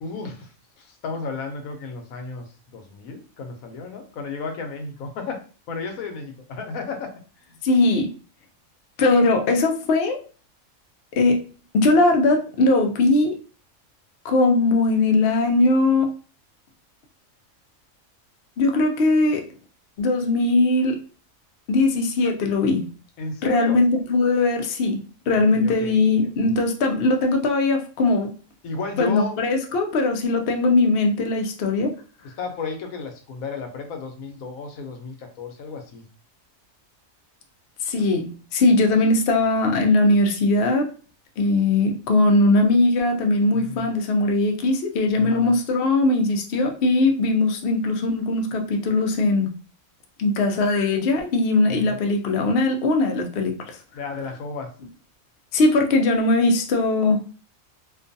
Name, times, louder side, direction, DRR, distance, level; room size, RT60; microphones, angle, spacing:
voice 1, 0.0-5.4 5.7-7.1 7.4-7.6 23.2-23.8 25.5-26.0 28.6-29.4 32.4-36.0 43.5-43.9 45.2-45.5 51.7-52.0 53.9-54.7, left 4 dB, 85° left, 1.0 m, -33 dB
voice 2, 7.6-8.1 9.0-10.2 11.1-11.5 11.7-13.4 14.2-16.1 18.6-19.5 20.0-21.0 21.7-22.9 23.4-28.3 29.0-31.9 37.8-40.9 41.4-49.5 50.2-53.8 55.5-57.2, left 2 dB, 60° left, 0.6 m, -20 dB
2.5 x 2.3 x 2.6 m
omnidirectional pair, 1.4 m